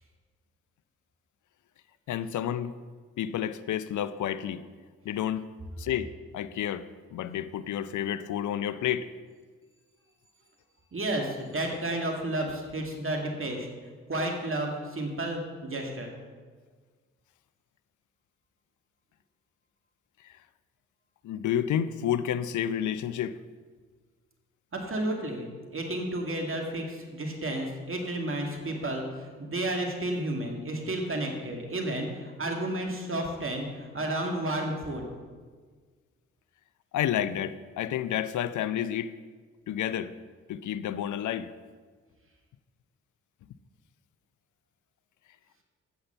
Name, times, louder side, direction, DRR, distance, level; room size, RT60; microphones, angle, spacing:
voice 1, 2.1-2.8 3.2-4.6 5.0-5.4 5.8-9.1 20.2-20.3 21.2-23.4 36.9-39.1 39.7-40.1 40.5-41.5, left 10 dB, 60° left, 14 dB, 0.6 m, -30 dB
voice 2, 10.9-13.7 14.1-16.1 24.7-35.1, right 1 dB, 40° right, 1 dB, 2.2 m, -32 dB
8.7 x 8.0 x 5.7 m, 1.5 s
hypercardioid pair, 40°, 34 cm